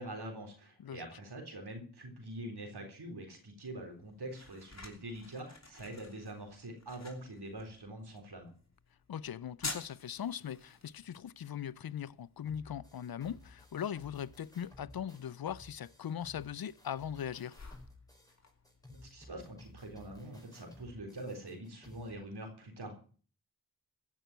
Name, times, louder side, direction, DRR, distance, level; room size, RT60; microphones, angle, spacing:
voice 1, 0.0-8.5 18.9-23.1, right 1 dB, 90° right, 3.9 m, -45 dB
sound 1, 3.6-21.2, left 3 dB, 45° left, 3.2 m, -52 dB
voice 2, 9.1-17.6, left 9 dB, 70° left, 0.6 m, -40 dB
sound 2, 12.5-22.1, left 1 dB, 10° left, 5.1 m, -56 dB
15.0 x 6.2 x 9.2 m
cardioid pair, 50°, 38 cm